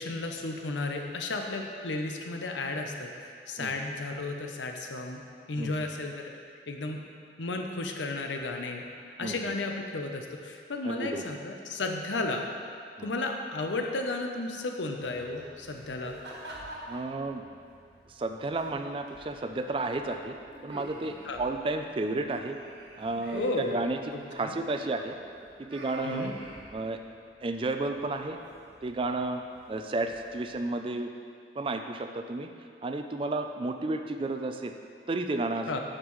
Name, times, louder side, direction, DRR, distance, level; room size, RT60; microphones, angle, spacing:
voice 1, 0.0-3.1 3.5-5.2 5.5-6.3 6.7-7.0 7.4-8.8 9.2-12.4 13.0-16.2 21.2-21.4 23.3-23.7 24.1-24.6 26.0-26.4 35.7-35.8, left 2 dB, 85° left, 3 dB, 0.7 m, -33 dB
voice 2, 10.8-11.2 13.0-13.1 16.9-17.4 18.1-20.4 20.6-22.6 23.0-24.0 24.3-25.2 25.6-26.3 26.7-27.0 27.4-28.4 28.8-29.4 29.7-31.1 31.6-32.5 32.8-34.7 35.1-35.7, right 2 dB, 30° right, 6 dB, 0.4 m, -32 dB
sound 1, 15.0-30.6, equal, 75° right, 1.5 m, -47 dB
8.8 x 6.6 x 3.1 m, 2.2 s
head